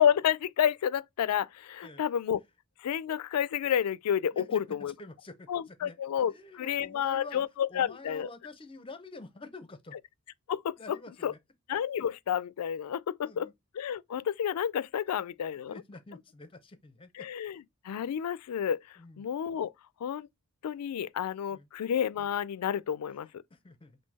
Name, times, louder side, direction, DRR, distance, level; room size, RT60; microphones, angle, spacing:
voice 1, 0.0-2.4 2.8-4.9 5.5-6.3 6.6-8.3 10.5-11.0 11.2-11.3 11.7-13.5 13.7-15.8 17.1-17.6 17.8-18.8 19.2-19.7 20.0-20.3 20.6-23.4, left 9 dB, 85° left, 0.3 m, -30 dB
voice 2, 4.3-6.0 6.3-7.4 7.7-10.0 10.8-11.4 13.2-13.5 15.7-17.3 19.0-19.3 21.5-21.7 23.5-24.0, left 3 dB, 25° left, 0.6 m, -48 dB
3.7 x 2.6 x 4.0 m
head